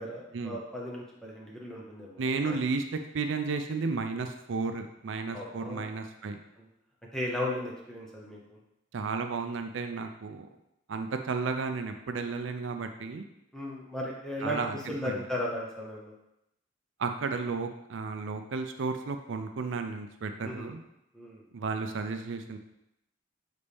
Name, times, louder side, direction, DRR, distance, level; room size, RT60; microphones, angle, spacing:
voice 1, 0.0-2.6 5.3-5.9 6.6-6.7 7.1-8.6 13.5-14.6 14.9-16.1 20.4-20.7 21.1-21.4, left 1 dB, 5° left, -4 dB, 0.9 m, -36 dB
voice 2, 2.2-6.4 8.9-10.5 10.9-13.2 14.4-14.8 15.0-15.2 17.0-20.8 21.5-22.6, right 4 dB, 70° right, 6 dB, 0.5 m, -33 dB
6.8 x 4.1 x 3.4 m, 0.85 s
head